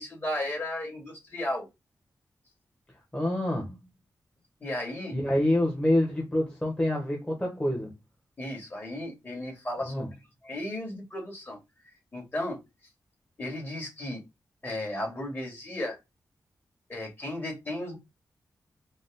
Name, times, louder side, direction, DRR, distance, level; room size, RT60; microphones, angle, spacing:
voice 1, 0.0-1.7 4.6-5.2 8.4-10.1 10.4-11.6 12.1-12.6 13.4-14.2 14.6-16.0 16.9-18.0, left 1 dB, 30° left, 2.6 m, -34 dB
voice 2, 3.1-3.8 5.1-7.9 9.8-10.1, left 1 dB, 10° left, 1.4 m, -27 dB
5.1 x 2.4 x 3.7 m
cardioid pair, 75°, 7 cm